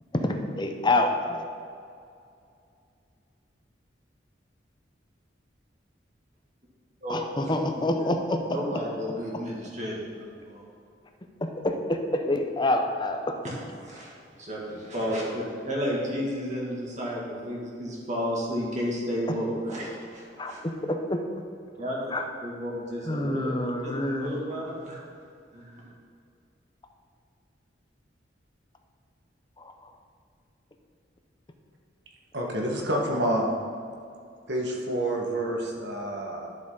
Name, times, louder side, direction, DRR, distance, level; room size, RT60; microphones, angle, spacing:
voice 1, 0.1-1.5 7.1-8.4 11.4-13.4 20.4-21.2 22.1-22.2 23.1-24.4 29.6-29.7, left 1 dB, 25° left, 4 dB, 0.7 m, -27 dB
voice 2, 7.0-7.8 8.5-10.6 13.4-14.1 14.4-20.6 21.8-22.1 22.4-23.9 24.2-25.0 25.5-25.9, equal, 40° right, -4 dB, 2.2 m, -32 dB
voice 3, 32.3-33.5 34.5-36.5, right 1 dB, 65° right, -1 dB, 1.6 m, -28 dB
11.5 x 7.3 x 3.9 m, 2.4 s
head